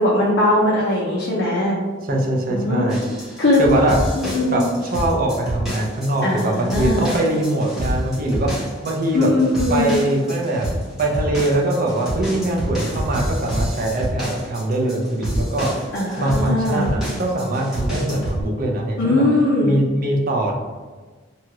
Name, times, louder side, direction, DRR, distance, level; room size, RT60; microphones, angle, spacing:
voice 1, 0.0-1.8 2.5-2.9 3.4-3.6 4.2-4.6 6.2-7.1 9.1-10.0 15.9-16.9 19.0-19.7, left 2 dB, 60° left, -6 dB, 0.5 m, -20 dB
voice 2, 2.1-3.0 3.6-4.0 4.5-9.3 9.7-10.6 11.0-15.7 16.2-19.2 19.6-20.5, right 1 dB, 45° right, 0 dB, 0.5 m, -22 dB
sound 1, 2.9-18.4, equal, 5° right, 1.0 m, -28 dB
2.7 x 2.3 x 2.9 m, 1.3 s
head